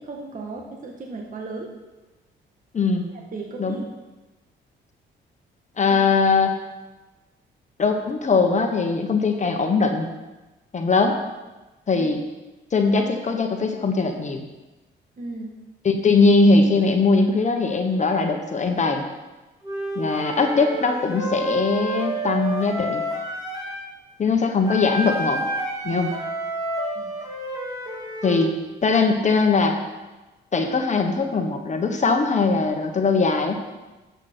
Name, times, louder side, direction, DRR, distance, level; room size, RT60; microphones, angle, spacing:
voice 1, 0.0-1.7 3.3-3.9 5.9-6.0 11.9-12.1 15.2-15.5 26.9-27.1, right 3 dB, 40° right, 0 dB, 1.6 m, -35 dB
voice 2, 2.7-3.1 3.6-3.8 5.8-6.6 7.8-10.1 10.7-11.2 11.9-12.3 12.7-14.4 15.8-19.0 19.9-23.0 24.2-25.4 25.8-26.1 28.2-28.5 28.8-29.8 30.5-33.6, left 4 dB, 35° left, 4 dB, 1.3 m, -20 dB
Wind instrument woodwind instrument, 19.6-23.9 24.7-28.6, right 1 dB, 20° right, 3.4 m, -29 dB
11.5 x 8.0 x 4.5 m, 1.1 s
cardioid pair, 90°, 20 cm